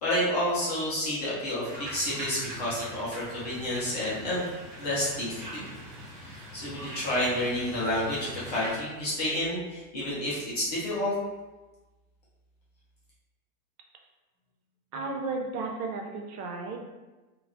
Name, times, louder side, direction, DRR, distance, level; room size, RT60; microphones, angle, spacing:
voice 1, 0.0-4.5 4.8-5.7 6.5-11.1, left 1 dB, 30° left, -9 dB, 0.4 m, -30 dB
sound 1, 1.6-8.7, right 1 dB, 25° right, 0.5 m, -42 dB
voice 2, 14.9-16.8, right 3 dB, 70° right, 2 dB, 0.7 m, -33 dB
2.3 x 2.0 x 3.5 m, 1.1 s
supercardioid pair, 180°, 47 cm